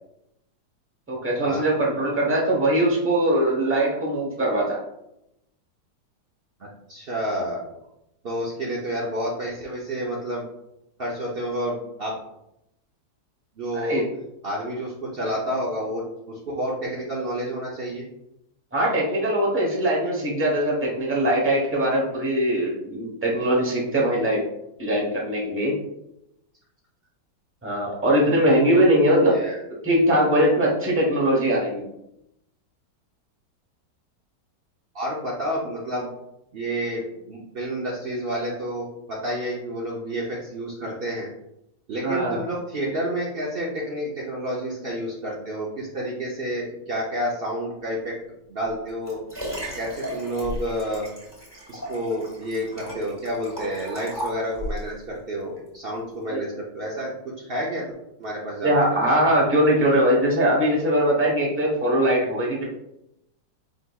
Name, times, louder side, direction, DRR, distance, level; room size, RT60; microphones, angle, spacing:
voice 1, 1.1-4.8 13.8-14.0 18.7-24.4 24.8-25.7 27.6-29.4 29.8-31.8 42.0-42.4 56.3-56.4 58.6-62.6, right 1 dB, 10° right, -3 dB, 0.6 m, -21 dB
voice 2, 6.6-7.6 8.2-10.5 11.0-12.2 13.6-14.0 14.4-16.0 16.3-18.1 29.3-29.6 34.9-36.1 36.5-41.3 41.9-48.1 48.5-49.2 49.8-51.1 51.7-57.9 58.2-58.9, equal, 85° right, -4 dB, 0.5 m, -29 dB
Liquid, 48.7-54.9 55.6-55.7, equal, 10° left, 1.2 m, -35 dB
4.7 x 3.8 x 2.3 m, 0.83 s
omnidirectional pair, 1.9 m